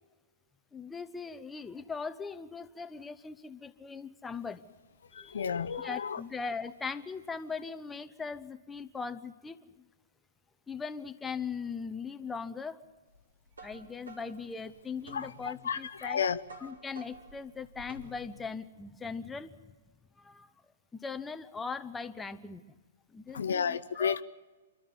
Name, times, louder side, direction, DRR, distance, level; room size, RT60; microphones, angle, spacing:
voice 1, 0.7-4.6 5.1-5.4 5.7-9.6 10.7-12.8 13.6-16.2 16.6-19.7 20.2-20.5 20.9-22.6 23.1-24.2, left 5 dB, 10° left, 9 dB, 0.9 m, -40 dB
voice 2, 5.1-6.2 15.1-16.4 23.3-24.2, left 7 dB, 65° left, 13 dB, 0.7 m, -32 dB
sound 1, 13.1-18.6, right 1 dB, 75° right, 4.3 m, -52 dB
28.5 x 12.5 x 9.7 m, 1.3 s
figure-of-eight pair, 115°, 0 cm